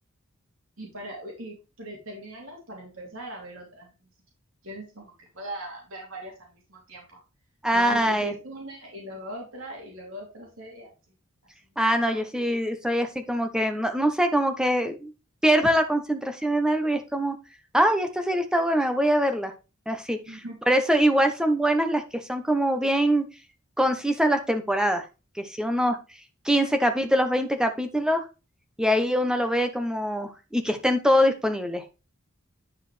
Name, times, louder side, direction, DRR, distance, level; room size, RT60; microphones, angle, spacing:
voice 1, 0.8-3.9 4.6-7.2 7.7-10.9 11.9-12.2 20.3-20.6, right 1 dB, 70° right, -1 dB, 2.8 m, -40 dB
voice 2, 7.6-8.3 11.8-15.1 15.4-17.3 17.7-19.5 19.9-20.4 20.7-22.0 22.3-23.2 23.8-25.0 25.4-26.0 26.4-28.2 28.8-31.8, equal, 5° right, 7 dB, 0.8 m, -23 dB
10.0 x 4.9 x 3.3 m, 0.29 s
head